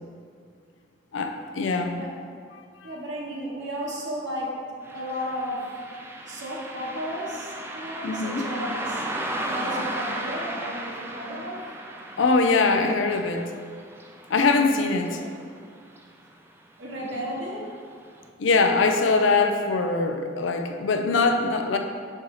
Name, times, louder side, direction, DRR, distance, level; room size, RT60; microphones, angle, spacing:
voice 1, 1.1-2.0 2.8-2.9 8.0-8.4 12.2-13.4 14.3-15.2 18.4-21.8, left 3 dB, 85° left, 5 dB, 0.5 m, -22 dB
voice 2, 2.8-4.5 4.9-5.6 6.3-9.0 9.5-11.6 15.1-15.2 16.8-17.6, equal, 70° right, -4 dB, 1.3 m, -33 dB
Car passing by, 4.8-15.7 15.9-16.0 17.0-17.2 17.6-17.7 18.2-18.3, right 1 dB, 15° right, 0.4 m, -35 dB
6.2 x 4.3 x 4.7 m, 2.2 s
head